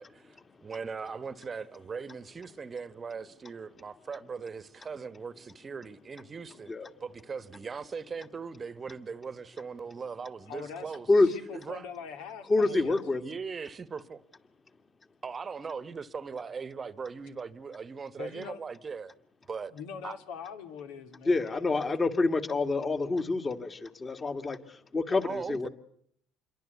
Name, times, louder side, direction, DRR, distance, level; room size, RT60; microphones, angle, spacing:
voice 1, 0.0-6.7 7.0-11.1 11.5-11.9 12.7-12.8 13.2-14.2 15.2-19.1 19.5-19.7 20.0-20.2 25.2-25.7, right 5 dB, 30° right, 1.2 m, -39 dB
voice 2, 10.5-11.0 11.3-13.2 18.2-18.6 19.7-21.6, left 6 dB, 85° left, 2.9 m, -43 dB
voice 3, 12.5-13.2 21.2-25.7, left 3 dB, 25° left, 2.0 m, -27 dB
27.5 x 22.5 x 8.3 m
cardioid pair, 110°, 0 cm